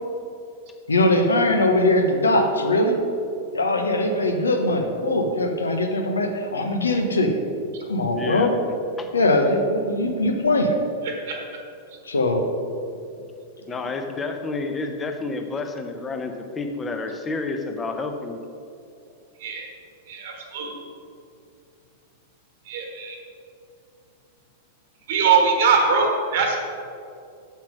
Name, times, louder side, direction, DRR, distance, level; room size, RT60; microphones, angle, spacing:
voice 1, 0.9-3.0 3.5-7.4 7.9-8.5 9.1-10.7 12.0-12.4, left 1 dB, 75° left, 4 dB, 1.0 m, -21 dB
voice 2, 8.1-8.5 9.0-9.1 13.7-18.4, left 3 dB, 15° left, 5 dB, 0.9 m, -30 dB
voice 3, 11.0-11.4 19.4-19.7 20.1-20.7 22.7-23.2 25.1-26.6, right 5 dB, 55° right, 3 dB, 1.3 m, -22 dB
7.6 x 7.3 x 5.1 m, 2.6 s
figure-of-eight pair, 95°, 0 cm